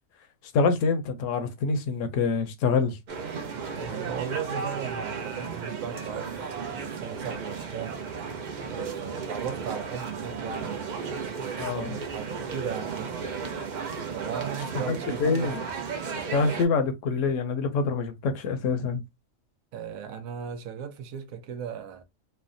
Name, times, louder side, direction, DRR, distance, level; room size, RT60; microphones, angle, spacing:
voice 1, 0.5-3.0 11.6-12.0 14.9-15.6 16.3-19.0, left 4 dB, 70° left, 1.0 m, -26 dB
sound 1, 3.1-16.7, right 5 dB, 55° right, 0.5 m, -34 dB
voice 2, 3.7-8.0 8.7-13.4 14.1-15.6 19.7-22.0, right 7 dB, 85° right, 1.0 m, -37 dB
3.2 x 2.1 x 2.5 m
omnidirectional pair, 1.4 m